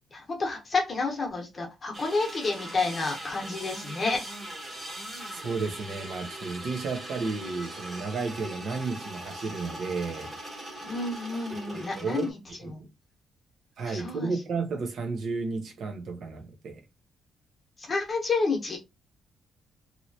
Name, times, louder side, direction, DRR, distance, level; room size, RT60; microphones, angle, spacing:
voice 1, 0.1-4.2 10.8-12.4 12.7-12.8 13.8-14.3 17.8-18.8, left 3 dB, 25° left, 1.0 m, -30 dB
sound 1, 1.9-12.3, right 1 dB, 25° right, 1.0 m, -40 dB
voice 2, 5.3-10.3 11.7-12.3 12.6-12.9 13.8-16.8, right 4 dB, 55° right, 0.8 m, -33 dB
3.0 x 2.9 x 2.7 m
cardioid pair, 170°, 0 cm